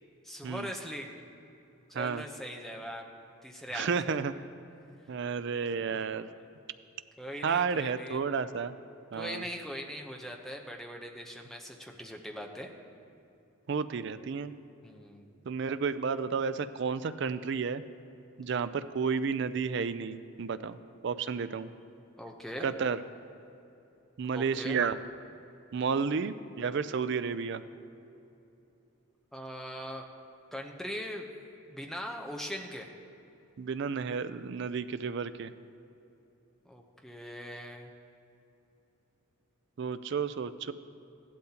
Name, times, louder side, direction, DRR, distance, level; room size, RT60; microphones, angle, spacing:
voice 1, 0.2-1.2 1.9-3.1 3.4-4.2 5.8-6.4 7.2-8.3 9.1-12.7 14.8-15.3 22.2-22.7 24.3-24.8 29.3-30.0 30.5-31.3 31.7-32.9 36.6-37.9, equal, ahead, 1 dB, 0.7 m, -41 dB
voice 2, 3.7-4.3 5.1-6.3 7.4-8.7 9.1-9.4 13.7-14.5 15.5-17.8 18.4-20.8 21.0-21.7 22.6-23.0 24.2-25.0 25.7-27.6 33.6-35.5 39.8-40.7, right 5 dB, 55° right, 13 dB, 0.4 m, -31 dB
15.5 x 12.0 x 2.9 m, 2.7 s
head